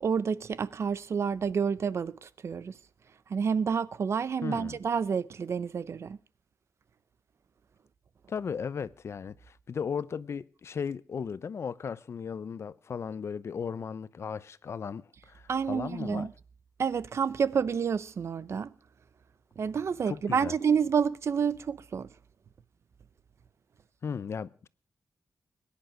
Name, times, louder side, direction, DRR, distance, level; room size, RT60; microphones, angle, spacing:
voice 1, 0.0-2.8 3.3-6.2 15.5-16.3 16.8-18.7 19.6-22.1, right 6 dB, 55° right, 0.7 m, -29 dB
voice 2, 4.4-4.8 8.3-16.3 20.1-20.5 24.0-24.7, left 6 dB, 55° left, 0.7 m, -36 dB
21.5 x 10.5 x 6.0 m
wide cardioid pair, 175°, 6 cm